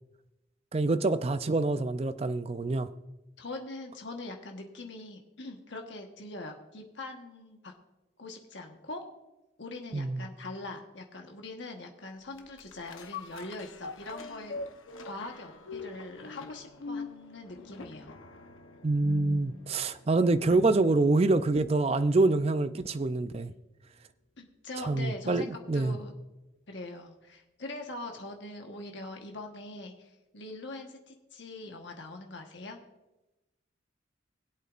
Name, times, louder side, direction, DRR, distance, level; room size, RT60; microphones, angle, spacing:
voice 1, 0.7-2.9 9.9-10.2 18.8-23.5 24.9-26.0, right 2 dB, 30° right, 0.4 m, -26 dB
voice 2, 3.4-7.7 8.2-9.0 9.6-14.5 15.0-18.1 22.1-22.2 24.4-26.1 26.7-32.8, left 2 dB, 60° left, 1.3 m, -42 dB
Cuckoo Clock Breaking Down A, 12.4-20.9 21.4-21.5, left 3 dB, 80° left, 0.9 m, -43 dB
20.5 x 8.2 x 2.5 m
head